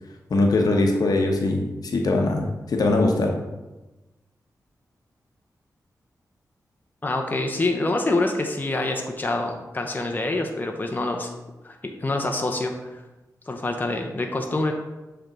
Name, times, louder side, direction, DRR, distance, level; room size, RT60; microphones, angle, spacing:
voice 1, 0.3-3.3, left 2 dB, 70° left, 2 dB, 0.9 m, -21 dB
voice 2, 7.0-11.3 11.6-13.0 13.5-14.7, left 2 dB, 25° left, 3 dB, 0.7 m, -26 dB
7.3 x 3.4 x 3.9 m, 1.1 s
cardioid pair, 60°, 7 cm